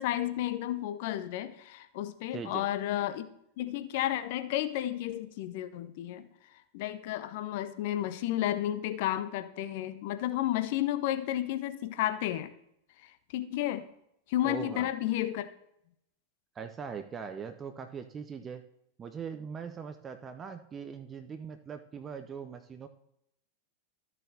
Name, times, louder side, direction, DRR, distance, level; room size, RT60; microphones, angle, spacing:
voice 1, 0.0-3.3 3.6-6.3 6.7-12.5 13.3-13.9 14.3-15.5, left 13 dB, 50° left, 11 dB, 0.6 m, -32 dB
voice 2, 2.3-2.7 14.4-14.9 16.6-18.7 19.0-22.9, right 6 dB, 20° right, 8 dB, 0.5 m, -41 dB
13.5 x 6.7 x 2.8 m, 0.78 s
figure-of-eight pair, 90°, 0 cm